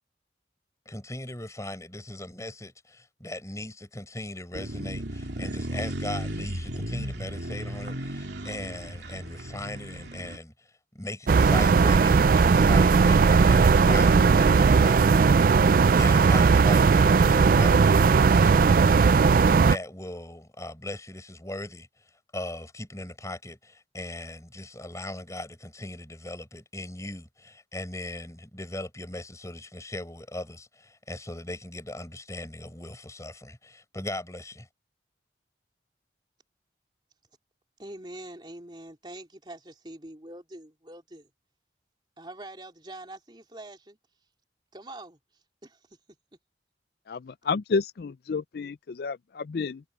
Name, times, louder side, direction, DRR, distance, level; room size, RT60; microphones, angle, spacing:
voice 1, 0.9-15.5 15.9-21.9 22.3-34.7, left 1 dB, 15° left, 5.7 m, -39 dB
Lisbon Street Sound, 4.5-10.4, right 1 dB, 70° right, 2.7 m, -35 dB
sound 1, 11.3-19.8, right 5 dB, 50° right, 0.3 m, -18 dB
voice 2, 37.8-41.3 42.2-44.0 44.7-45.2 45.6-46.0, right 1 dB, 25° right, 3.5 m, -44 dB
voice 3, 47.1-49.8, left 4 dB, 55° left, 0.4 m, -30 dB
head